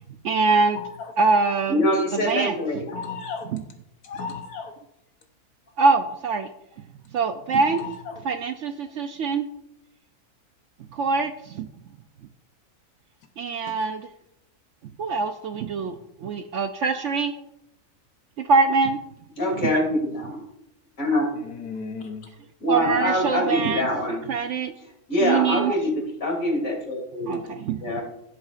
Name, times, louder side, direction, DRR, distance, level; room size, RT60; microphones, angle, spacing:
voice 1, 0.2-0.8 1.2-1.8 2.1-2.5 3.5-3.6 5.8-6.5 7.1-7.8 8.2-9.5 10.9-11.7 13.4-14.0 15.0-17.3 18.5-19.0 19.6-19.8 22.7-23.9 24.3-24.7 25.2-25.7 27.2-28.0, right 4 dB, 65° right, 8 dB, 0.8 m, -23 dB
voice 2, 0.7-1.1 2.9-3.5 4.0-4.7 7.7-8.2 21.3-22.3, left 5 dB, 75° left, 5 dB, 1.4 m, -35 dB
voice 3, 1.7-2.8 17.1-17.2 19.4-20.4 21.0-21.3 22.6-24.2 25.1-27.5 27.8-28.0, left 1 dB, 60° left, 0 dB, 3.3 m, -24 dB
15.5 x 7.8 x 2.5 m, 0.79 s
omnidirectional pair, 1.6 m